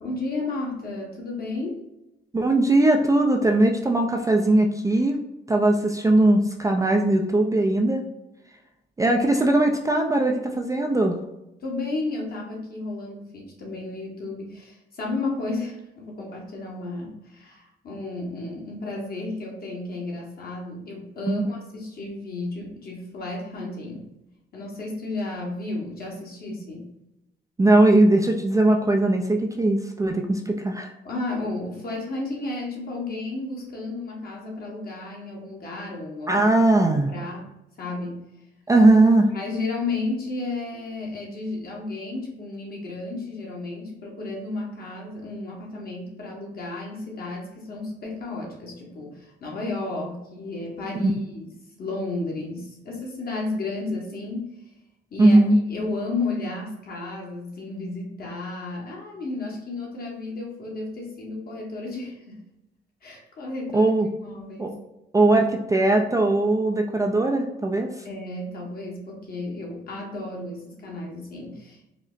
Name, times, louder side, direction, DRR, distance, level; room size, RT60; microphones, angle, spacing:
voice 1, 0.0-1.9 11.6-24.1 24.5-26.9 31.0-36.4 36.8-37.5 37.8-38.2 39.3-51.5 51.8-54.7 55.1-62.4 63.0-63.9 64.2-64.8 68.0-71.9, left 2 dB, 50° left, -2 dB, 1.3 m, -33 dB
voice 2, 2.3-5.2 5.5-8.0 9.0-11.2 21.3-21.5 27.6-30.9 36.3-37.1 38.7-39.3 51.0-51.1 55.2-55.6 63.7-64.1 64.6-64.7 65.1-67.9, right 2 dB, 15° right, 2 dB, 0.3 m, -19 dB
4.9 x 2.0 x 2.5 m, 0.90 s
cardioid pair, 90°, 20 cm